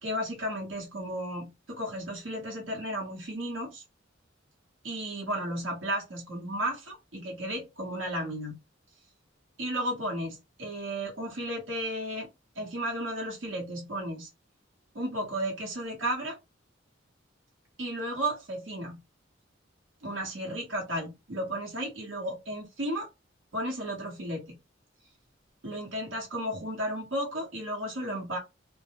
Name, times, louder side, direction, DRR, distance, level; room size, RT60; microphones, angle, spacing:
voice 1, 0.0-3.8 4.8-8.6 9.6-12.3 12.6-14.3 14.9-16.4 17.8-19.0 20.0-23.1 23.5-24.6 25.6-28.4, right 1 dB, 85° right, 1.0 m, -34 dB
2.2 x 2.0 x 2.8 m
head